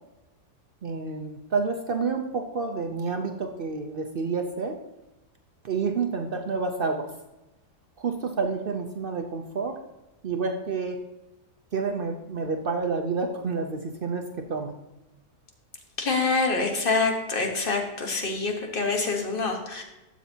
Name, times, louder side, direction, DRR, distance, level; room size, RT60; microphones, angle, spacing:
voice 1, 0.8-4.8 5.6-7.1 8.0-9.8 10.2-11.0 11.7-14.7, right 4 dB, 55° right, 5 dB, 0.6 m, -29 dB
voice 2, 16.0-19.8, left 3 dB, 35° left, 2 dB, 1.4 m, -26 dB
12.5 x 7.2 x 2.8 m, 1.0 s
omnidirectional pair, 1.6 m